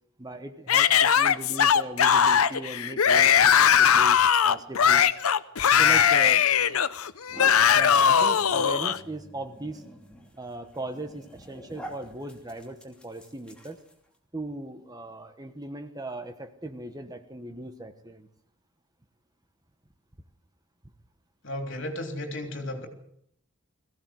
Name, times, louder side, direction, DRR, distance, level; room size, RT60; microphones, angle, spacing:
voice 1, 0.2-5.1 5.8-6.4 7.7-9.8 10.4-13.8 14.3-18.3, right 1 dB, 15° right, 8 dB, 1.2 m, -38 dB
Yell / Screaming, 0.7-9.0, left 8 dB, 75° left, 0.8 m, -20 dB
sound 1, 6.8-14.2, equal, 5° left, 2.9 m, -46 dB
voice 2, 21.4-22.9, left 1 dB, 55° left, 4 dB, 3.4 m, -34 dB
21.5 x 16.0 x 7.8 m, 0.71 s
head